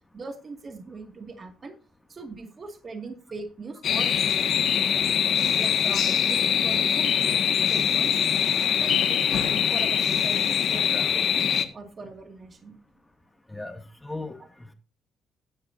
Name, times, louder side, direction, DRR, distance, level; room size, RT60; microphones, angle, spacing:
voice 1, 0.1-1.7 2.1-4.1 5.5-8.2 8.8-12.8, right 3 dB, 40° right, 5 dB, 2.2 m, -40 dB
sound 1, 3.8-11.6, left 8 dB, 65° left, 1.7 m, -23 dB
voice 2, 13.5-14.7, left 2 dB, 10° left, 5 dB, 2.3 m, -38 dB
16.0 x 10.0 x 2.7 m, 0.34 s
cardioid pair, 90°, 0 cm